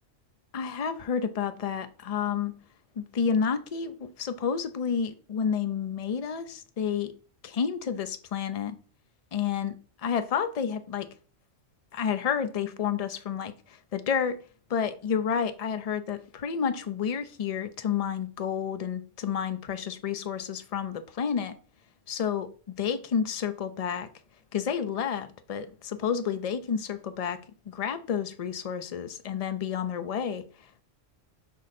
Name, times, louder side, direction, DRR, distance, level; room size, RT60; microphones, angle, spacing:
voice 1, 0.5-2.5 3.0-7.1 7.4-8.8 9.3-9.8 10.0-11.1 11.9-13.5 13.9-14.4 14.7-21.5 22.1-22.5 22.8-24.1 24.5-27.4 27.7-30.4, left 7 dB, 45° left, 0.5 m, -30 dB
6.5 x 3.7 x 4.1 m
omnidirectional pair, 1.3 m